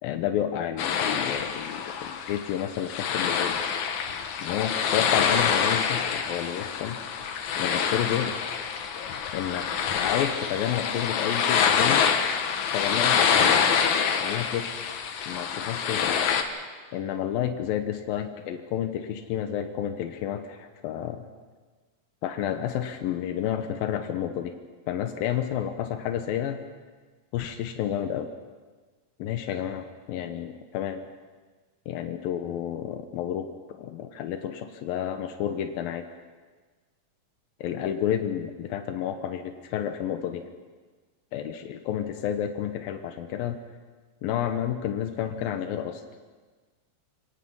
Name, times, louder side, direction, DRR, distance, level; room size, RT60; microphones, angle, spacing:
voice 1, 0.0-3.6 4.4-7.0 7.6-8.4 9.3-9.7 10.0-12.1 12.7-13.3 14.2-14.7 15.3-16.1 16.9-21.3 22.2-24.5 24.9-26.6 27.3-28.3 29.2-31.0 31.9-36.0 37.6-40.4 41.3-43.6 44.2-46.0, left 10 dB, 85° left, 7 dB, 2.8 m, -30 dB
sound 1, 0.8-16.4, left 7 dB, 65° left, 2.4 m, -26 dB
28.5 x 18.0 x 5.5 m, 1.4 s
omnidirectional pair, 4.1 m